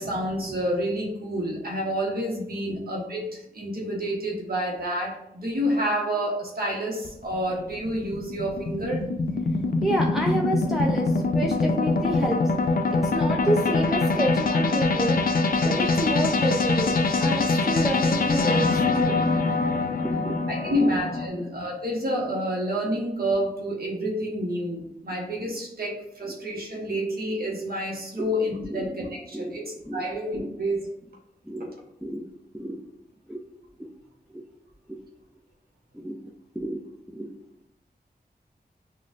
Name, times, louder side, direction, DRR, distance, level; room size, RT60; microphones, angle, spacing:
voice 1, 0.0-9.1 20.5-30.9 31.6-31.7, equal, 65° right, -2 dB, 1.0 m, -29 dB
sound 1, 7.0-21.3, left 3 dB, 60° left, 0.4 m, -24 dB
voice 2, 9.8-12.4 12.9-15.2 15.6-19.2 20.0-20.4 20.7-20.9 21.3-21.5 26.3-26.4 28.2-28.3 28.7-28.9 29.3-29.6 29.9-30.0 30.4-30.5 31.4-31.7 32.0-32.3 32.5-32.8 33.3-33.4 33.8-33.9 34.3-34.4 34.9-35.0 35.9-36.2 36.6-36.8 37.1-37.4, right 1 dB, ahead, -1 dB, 0.4 m, -29 dB
6.1 x 2.4 x 2.5 m, 0.81 s
wide cardioid pair, 95°, 17 cm